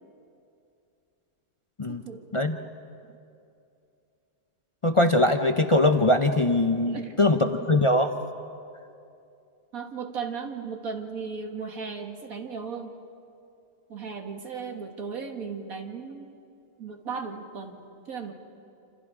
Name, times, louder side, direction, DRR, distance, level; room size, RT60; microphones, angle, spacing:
voice 1, 1.9-2.3 3.1-3.2 6.8-7.5 9.7-13.0 13.9-16.3 16.8-18.3, right 5 dB, 60° right, 4 dB, 2.1 m, -36 dB
voice 2, 4.8-8.1, left 2 dB, 35° left, 6 dB, 0.5 m, -22 dB
28.5 x 27.5 x 4.9 m, 2.6 s
omnidirectional pair, 1.7 m